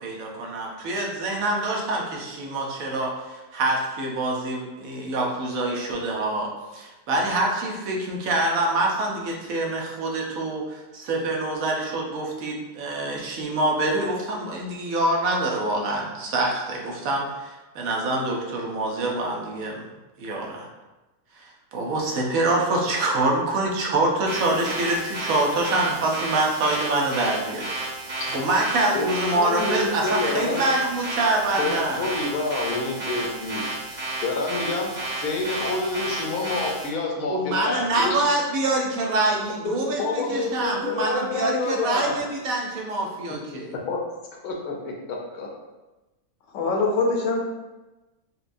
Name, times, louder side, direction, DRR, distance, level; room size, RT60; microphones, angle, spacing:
voice 1, 0.0-19.8 20.2-20.7 21.4-27.7 28.3-32.0 37.3-43.7, right 2 dB, 70° right, -1 dB, 1.1 m, -25 dB
sound 1, 24.3-36.9, right 2 dB, 50° right, 1.9 m, -32 dB
voice 2, 29.4-30.6 31.6-33.8 34.2-34.9 35.2-38.2 39.6-42.2 43.7-44.0 44.4-45.5, left 3 dB, 85° left, -1 dB, 1.2 m, -28 dB
voice 3, 46.5-47.4, left 3 dB, 65° left, 0 dB, 0.9 m, -23 dB
4.2 x 2.2 x 2.5 m, 1.1 s
omnidirectional pair, 1.6 m